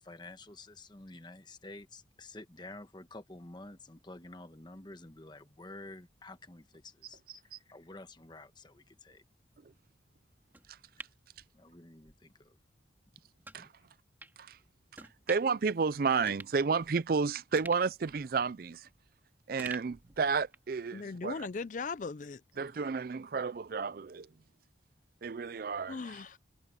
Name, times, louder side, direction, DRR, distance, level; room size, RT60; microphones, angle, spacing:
voice 1, 0.0-9.2 11.5-12.6 13.5-13.7, left 2 dB, 25° left, 1.2 m, -50 dB
sound 1, 10.5-12.2 12.5-12.6 13.4-13.6 14.2-14.4 14.9-15.6 15.9-16.0 16.3-17.2 17.6-19.2 19.6-20.8 21.1-21.2, right 2 dB, 10° right, 2.9 m, -50 dB
voice 2, 15.3-18.9 19.5-21.5 22.6-24.3 25.2-26.2, right 5 dB, 50° right, 0.4 m, -31 dB
voice 3, 20.9-22.4 25.9-26.4, left 4 dB, 40° left, 0.4 m, -38 dB
head